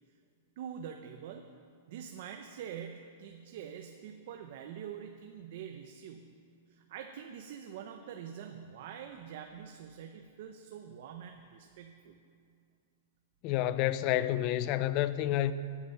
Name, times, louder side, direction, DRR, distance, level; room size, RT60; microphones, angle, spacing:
voice 1, 0.6-1.5 1.9-6.3 6.7-12.2, right 8 dB, 50° right, 0.8 m, -45 dB
voice 2, 13.4-15.5, left 13 dB, 35° left, 0.5 m, -29 dB
15.5 x 8.5 x 5.8 m
supercardioid pair, 160°, 0 cm